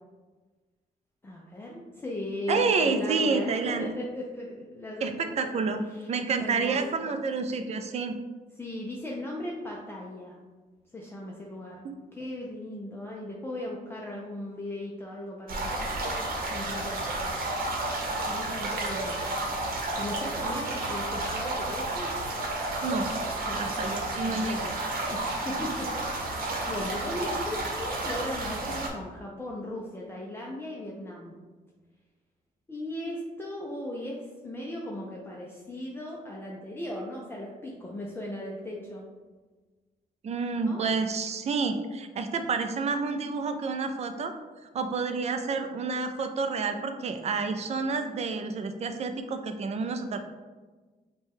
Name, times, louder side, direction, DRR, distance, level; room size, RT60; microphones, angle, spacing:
voice 1, 1.2-5.5 5.9-6.1 6.4-6.8 8.6-10.4 10.9-11.8 12.1-15.8 16.5-17.0 18.3-19.2 19.6-19.7 20.0-22.1 23.4-24.4 25.1-26.3 26.7-31.3 32.7-39.0 40.7-40.8, left 1 dB, 15° left, -3 dB, 0.4 m, -37 dB
voice 2, 2.5-3.9 5.0-8.1 11.8-11.9 22.8-23.1 23.6-24.7 40.2-44.3 44.7-50.2, right 4 dB, 45° right, 7 dB, 0.4 m, -29 dB
sound 1, 15.5-28.9, right 2 dB, 70° right, 0.9 m, -31 dB
5.4 x 2.2 x 3.4 m, 1.3 s
cardioid pair, 135°, 16 cm